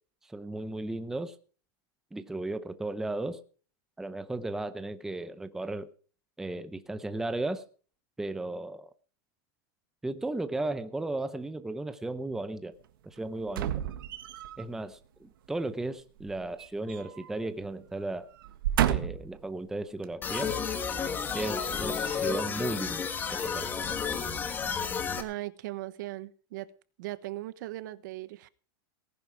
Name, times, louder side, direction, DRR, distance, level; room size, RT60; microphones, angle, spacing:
voice 1, 0.3-1.3 2.1-3.4 4.0-5.9 6.4-7.6 8.2-8.9 10.0-12.7 13.0-13.7 14.6-18.3 18.8-20.5 21.3-23.7, right 2 dB, 5° right, 0.7 m, -35 dB
sound 1, 13.5-14.6 16.2-17.3 17.6-17.8 18.4-19.4 20.0-20.1, right 11 dB, 85° right, 1.6 m, -31 dB
sound 2, 20.2-25.2, left 6 dB, 15° left, 1.5 m, -32 dB
voice 2, 25.2-26.7 27.0-28.5, right 17 dB, 60° right, 1.1 m, -38 dB
18.5 x 11.0 x 4.7 m
supercardioid pair, 165°, 11 cm